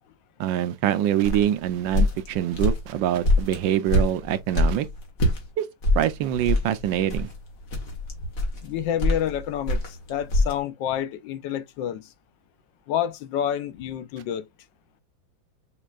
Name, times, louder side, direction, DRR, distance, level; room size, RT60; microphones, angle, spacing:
voice 1, 0.4-4.9 5.6-5.7 6.0-7.3, right 11 dB, 80° right, 1.3 m, -24 dB
sound 1, 1.2-5.4 5.8-10.6, left 1 dB, 45° left, 1.8 m, -24 dB
voice 2, 8.6-12.1 12.9-14.5, left 10 dB, 80° left, 1.3 m, -29 dB
6.3 x 3.3 x 2.3 m
omnidirectional pair, 2.1 m